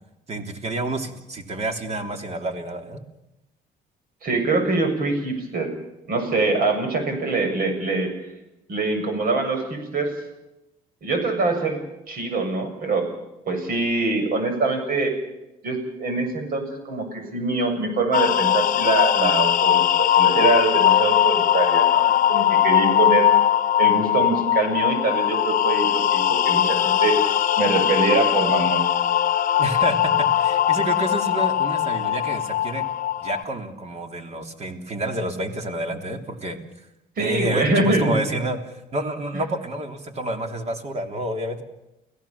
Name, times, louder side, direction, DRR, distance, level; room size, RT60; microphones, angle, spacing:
voice 1, 0.3-3.0 29.6-32.9 33.2-36.6 37.2-38.6 38.9-41.6, right 1 dB, 40° right, 5 dB, 3.4 m, -29 dB
voice 2, 4.2-5.7 6.1-8.1 8.7-10.1 11.0-11.8 12.1-13.1 13.5-15.1 15.6-23.3 23.8-27.2 27.6-28.8 37.2-38.2, right 3 dB, 60° right, 5 dB, 7.4 m, -24 dB
sound 1, 18.1-33.4, left 11 dB, 50° left, 1.0 m, -20 dB
30.0 x 17.0 x 7.3 m, 0.94 s
cardioid pair, 110°, 17 cm